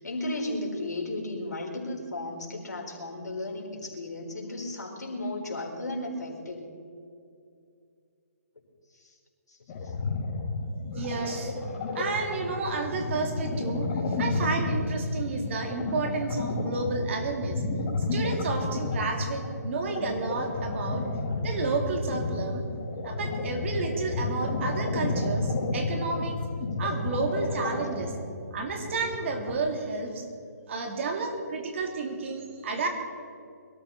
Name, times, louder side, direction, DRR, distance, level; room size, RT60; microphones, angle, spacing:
voice 1, 0.0-6.7 8.9-9.1 9.5-9.6 9.8-9.9, left 1 dB, 90° left, -1 dB, 4.4 m, -34 dB
sound 1, 9.7-29.6, left 2 dB, 35° left, 3.6 m, -31 dB
voice 2, 10.9-11.6 11.9-17.6 18.1-21.1 21.4-22.6 23.0-26.4 26.8-28.1 28.5-30.2 30.7-32.9, right 3 dB, 45° right, 3 dB, 2.7 m, -31 dB
22.5 x 13.5 x 4.3 m, 2.4 s
hypercardioid pair, 150°, 9 cm